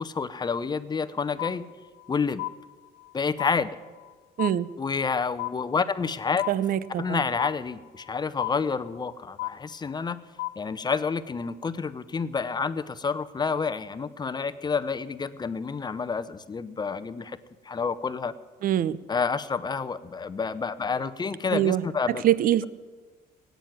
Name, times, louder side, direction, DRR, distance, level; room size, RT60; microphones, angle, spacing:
voice 1, 0.0-1.6 2.1-2.4 3.1-3.8 4.8-6.4 7.0-10.2 10.6-17.4 17.6-18.3 19.1-22.2, left 5 dB, 25° left, 14 dB, 0.8 m, -29 dB
sound 1, 1.4-2.1 2.4-3.1 3.4-4.1 4.4-5.1 5.4-6.1 6.4-7.1 7.4-8.1 8.4-9.1 9.4-10.1 10.4-11.1, left 19 dB, 80° left, 0.6 m, -35 dB
voice 2, 6.5-7.2 18.6-19.0 21.5-21.8 22.2-22.7, right 11 dB, 55° right, 18 dB, 0.7 m, -23 dB
17.0 x 9.2 x 9.4 m, 1.4 s
cardioid pair, 110°, 17 cm